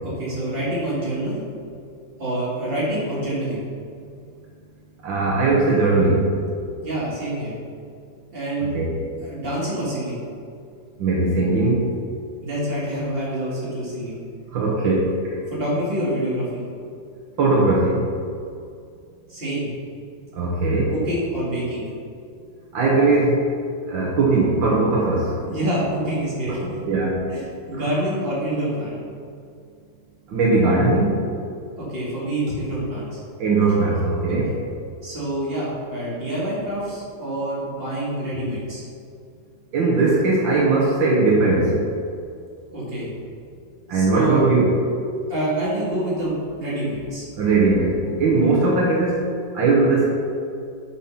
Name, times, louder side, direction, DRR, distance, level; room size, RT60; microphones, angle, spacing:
voice 1, 0.0-1.4 2.2-3.6 6.8-7.5 8.3-8.7 9.2-10.2 12.4-14.2 15.5-16.6 19.3-19.7 20.9-21.9 25.4-26.8 27.3-28.9 31.8-33.2 34.2-34.5 35.0-38.8 42.7-43.1 43.9-44.4 45.3-47.3, right 1 dB, 30° right, -7 dB, 2.8 m, -26 dB
voice 2, 5.0-6.3 8.7-8.9 11.0-11.9 14.5-15.4 17.4-18.1 20.3-20.9 22.7-23.4 23.9-25.4 26.9-27.2 27.7-27.8 30.3-31.1 33.4-34.5 39.7-41.8 43.9-44.7 47.4-49.2 49.5-50.1, right 3 dB, 75° right, -3 dB, 2.0 m, -19 dB
8.2 x 5.9 x 5.7 m, 2.3 s
omnidirectional pair, 2.1 m